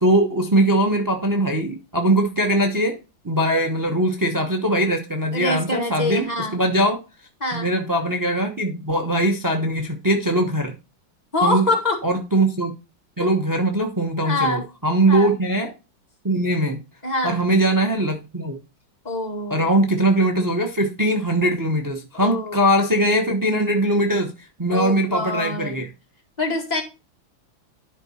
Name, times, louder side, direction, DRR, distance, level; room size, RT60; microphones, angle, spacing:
voice 1, 0.0-3.0 3.2-7.0 7.5-10.7 11.4-11.7 12.0-12.7 13.2-15.7 16.2-16.8 17.2-18.6 19.5-25.9, right 1 dB, 35° right, 0.3 m, -21 dB
voice 2, 5.3-6.6 7.4-7.7 11.3-12.0 13.2-13.3 14.2-14.6 15.1-15.3 17.0-17.4 19.0-19.7 22.1-22.7 24.7-25.8 26.4-26.8, left 2 dB, 20° left, 2.1 m, -25 dB
11.5 x 4.7 x 4.3 m
omnidirectional pair, 2.1 m